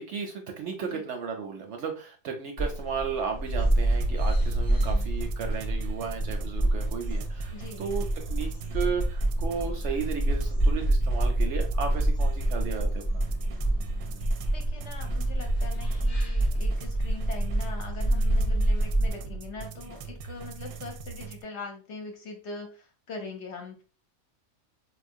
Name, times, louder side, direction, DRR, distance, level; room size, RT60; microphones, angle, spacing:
voice 1, 0.0-7.5 7.8-13.2, right 6 dB, 65° right, 4 dB, 0.7 m, -34 dB
sound 1, 2.6-19.1, right 1 dB, 40° left, 0.5 m, -27 dB
sound 2, 3.6-21.4, right 8 dB, 90° right, 1.1 m, -42 dB
voice 2, 4.7-5.1 7.5-7.9 14.5-23.8, left 4 dB, 60° left, 3 dB, 0.9 m, -42 dB
sound 3, 14.9-21.3, right 2 dB, 45° right, 0.3 m, -45 dB
4.1 x 2.4 x 2.6 m, 0.35 s
omnidirectional pair, 1.5 m